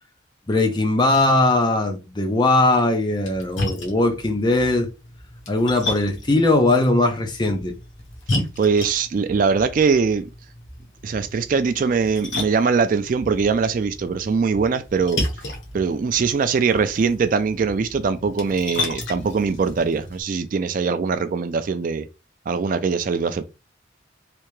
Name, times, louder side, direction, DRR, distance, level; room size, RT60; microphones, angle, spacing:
voice 1, 0.5-4.9 5.5-7.7, left 2 dB, 25° left, 0.6 m, -19 dB
Splash splatter, 3.1-20.2, left 1 dB, 75° left, 1.2 m, -33 dB
voice 2, 8.6-10.3 11.0-15.2 15.7-22.1 22.5-23.4, right 5 dB, 45° right, 0.3 m, -22 dB
3.4 x 2.8 x 3.1 m
head